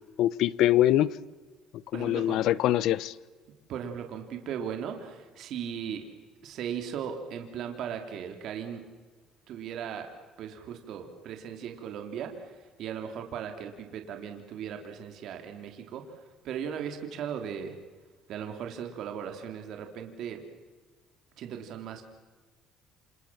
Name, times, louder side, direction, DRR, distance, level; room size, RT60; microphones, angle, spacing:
voice 1, 0.2-1.1 1.9-3.1, left 13 dB, 70° left, 0.9 m, -23 dB
voice 2, 1.9-2.4 3.7-6.1 6.4-8.8 9.5-10.1 10.4-17.8 18.3-20.4 21.4-22.1, right 8 dB, 65° right, 3.6 m, -37 dB
28.5 x 28.0 x 7.4 m
cardioid pair, 115°, 0 cm